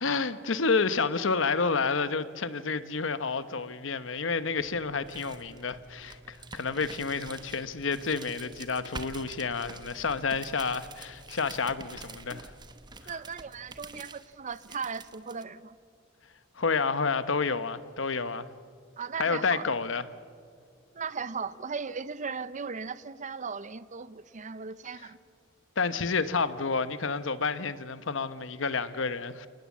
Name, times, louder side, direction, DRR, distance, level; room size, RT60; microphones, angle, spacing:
voice 1, 0.0-12.5 16.6-18.5 19.2-20.0 25.8-29.5, left 4 dB, 70° left, 0.9 m, -29 dB
sound 1, 4.6-15.4, right 3 dB, 20° right, 1.0 m, -47 dB
voice 2, 13.1-15.8 19.0-19.7 20.9-25.2, right 5 dB, 40° right, 0.6 m, -37 dB
29.0 x 19.0 x 7.4 m
head